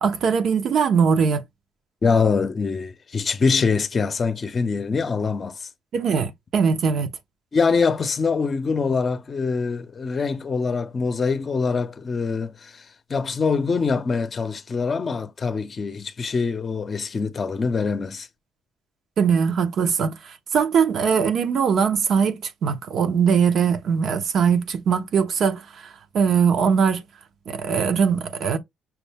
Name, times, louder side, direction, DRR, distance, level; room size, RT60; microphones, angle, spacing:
voice 1, 0.0-1.4 5.9-7.1 19.2-25.6 26.1-27.0 27.5-28.6, right 6 dB, 65° right, 0.8 m, -21 dB
voice 2, 2.0-5.7 7.5-12.8 13.1-18.3, left 5 dB, 40° left, 0.6 m, -24 dB
5.9 x 2.1 x 3.4 m
cardioid pair, 90°, 0 cm